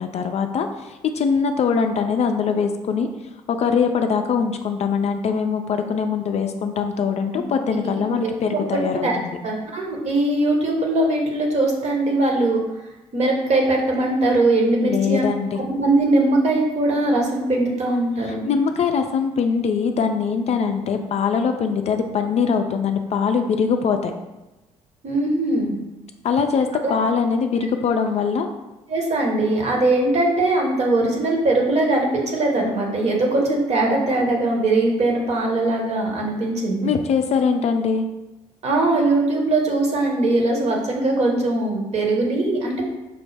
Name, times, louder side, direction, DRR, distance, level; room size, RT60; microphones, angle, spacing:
voice 1, 0.0-3.1 3.5-9.1 14.8-15.6 18.4-24.1 26.2-28.5 36.8-38.1, left 6 dB, 40° left, 6 dB, 0.4 m, -22 dB
voice 2, 8.2-8.6 9.0-12.6 13.1-15.2 15.7-18.5 25.0-25.7 26.8-26.9 28.9-36.9 38.6-42.9, right 2 dB, 45° right, 0 dB, 1.0 m, -21 dB
5.2 x 2.0 x 3.3 m, 1.0 s
hypercardioid pair, 50°, 16 cm